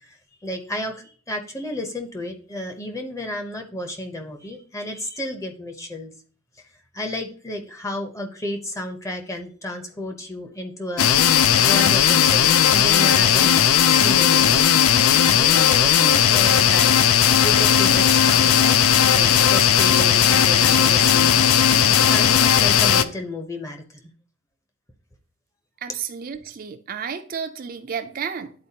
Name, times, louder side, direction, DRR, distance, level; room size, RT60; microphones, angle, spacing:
voice 1, 0.4-6.1 6.9-11.1 11.6-14.9 15.3-17.1 17.4-21.5 21.9-23.8, left 1 dB, 15° left, 0.7 m, -32 dB
sound 1, 11.0-23.0, left 9 dB, 75° left, 0.4 m, -16 dB
voice 2, 25.8-28.5, right 7 dB, 40° right, 0.4 m, -32 dB
10.5 x 4.3 x 2.8 m
head